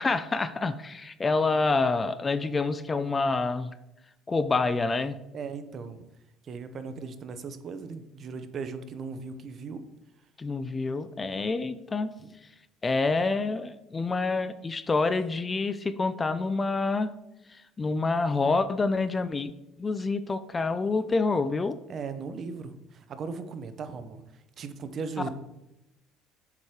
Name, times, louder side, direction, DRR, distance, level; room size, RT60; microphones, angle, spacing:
voice 1, 0.0-3.7 4.3-5.2 10.4-12.1 12.8-17.1 17.5-19.5 19.8-21.8 25.2-25.3, left 3 dB, 20° left, 13 dB, 0.3 m, -27 dB
voice 2, 5.3-6.0 6.4-9.8 12.2-12.3 21.9-25.3, right 5 dB, 40° right, 10 dB, 0.7 m, -38 dB
7.0 x 4.9 x 4.7 m, 0.91 s
cardioid pair, 130°, 0 cm